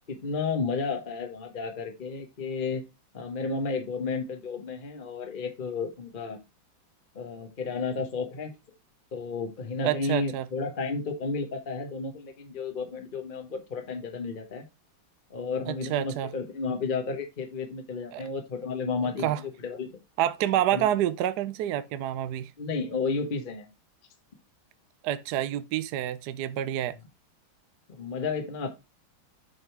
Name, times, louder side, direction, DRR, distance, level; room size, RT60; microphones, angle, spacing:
voice 1, 0.1-2.8 3.1-6.4 7.1-8.5 9.1-14.6 15.3-19.9 20.7-20.8 22.6-23.7 27.9-28.7, left 4 dB, 30° left, 1.1 m, -32 dB
voice 2, 9.8-10.5 15.7-16.3 18.1-18.2 19.2-19.4 20.2-22.5 25.0-27.0, right 12 dB, 70° right, 1.0 m, -28 dB
7.8 x 3.7 x 4.6 m
omnidirectional pair, 2.1 m